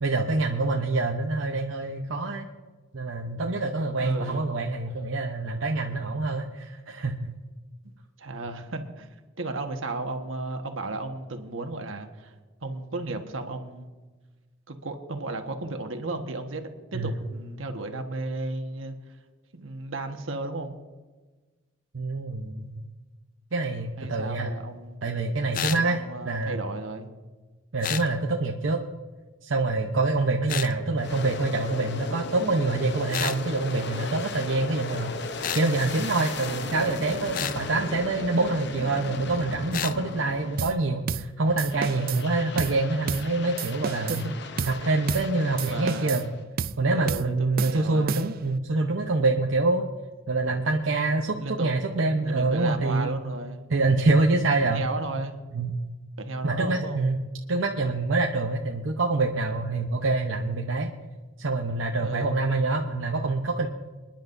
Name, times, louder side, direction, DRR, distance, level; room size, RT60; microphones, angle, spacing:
voice 1, 0.0-2.5 2.9-7.3 16.9-17.1 21.9-22.8 23.5-24.5 25.0-26.6 27.7-28.8 29.4-35.1 35.5-44.2 44.6-46.2 46.8-49.8 50.3-53.1 53.7-54.8 55.5-55.7 56.4-57.2 57.5-60.9 61.4-63.7, right 2 dB, 75° right, 1 dB, 0.9 m, -26 dB
voice 2, 4.0-4.5 8.2-9.1 9.4-12.3 12.6-13.9 14.7-18.9 19.5-20.8 24.0-25.0 25.7-27.1 29.9-30.0 36.3-36.7 44.1-44.3 45.7-46.3 46.8-48.1 51.4-51.9 52.2-53.7 54.7-55.4 56.2-57.0 62.0-62.4, right 2 dB, 90° right, 5 dB, 1.4 m, -34 dB
sound 1, 25.5-25.8 27.8-28.1 30.5-30.7 33.1-33.4 35.4-35.7 37.3-37.6 39.7-40.0, left 10 dB, 45° left, 0.4 m, -30 dB
Aircraft, 31.0-41.0 41.5-46.4, left 3 dB, 60° left, 0.8 m, -37 dB
sound 2, 40.6-40.8 41.1-41.3 41.6-42.2 42.6-42.8 43.1-43.3 43.6-44.3 44.6-44.8 45.1-45.3 45.6-46.3 46.6-46.8 47.1-47.3 47.6-48.5, right 6 dB, 50° right, 0.4 m, -32 dB
27.5 x 10.5 x 2.7 m, 1.3 s
head